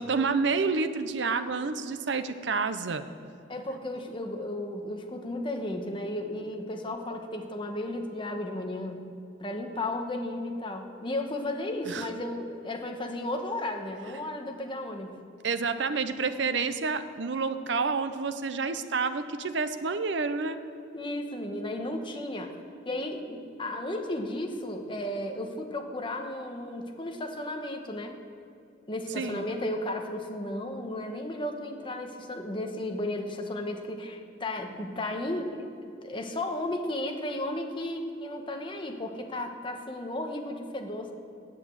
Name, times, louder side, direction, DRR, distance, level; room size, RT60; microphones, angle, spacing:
voice 1, 0.0-3.1 11.9-12.1 15.4-20.6 29.2-29.5, right 4 dB, 65° right, 11 dB, 0.6 m, -29 dB
voice 2, 3.5-9.0 9.4-15.1 20.9-22.5 22.8-28.2 28.9-35.5 36.0-41.1, left 1 dB, 25° left, 3 dB, 1.1 m, -34 dB
9.8 x 8.3 x 7.7 m, 2.6 s
head